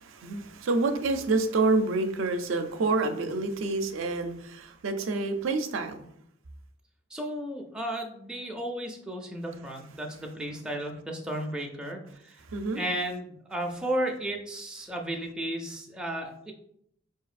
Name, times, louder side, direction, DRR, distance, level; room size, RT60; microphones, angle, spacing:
voice 1, 0.0-6.1 12.4-12.8, right 3 dB, 70° right, 7 dB, 0.4 m, -28 dB
voice 2, 7.1-12.4 12.8-16.5, right 1 dB, 5° right, 0 dB, 0.4 m, -34 dB
4.6 x 2.8 x 2.4 m, 0.70 s
head